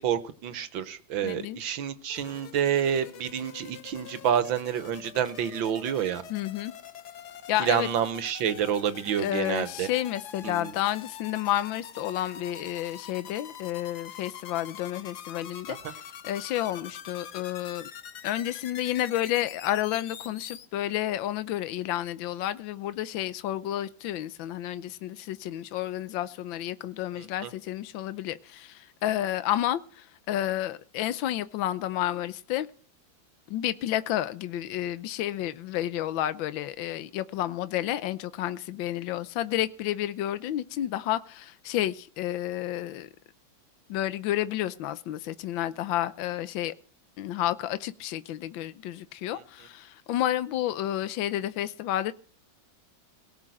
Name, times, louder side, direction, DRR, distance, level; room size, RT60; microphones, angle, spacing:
voice 1, 0.0-6.2 7.6-9.9 10.4-10.7 15.8-15.9 27.2-27.5, right 9 dB, 80° right, 1.8 m, -28 dB
voice 2, 1.2-1.6 6.3-6.7 7.5-7.9 9.2-17.9 18.2-32.7 33.5-43.1 43.9-46.7 47.2-52.1, left 13 dB, 80° left, 1.5 m, -30 dB
sound 1, 2.1-20.6, left 8 dB, 60° left, 1.5 m, -45 dB
18.0 x 6.2 x 7.8 m
omnidirectional pair, 2.1 m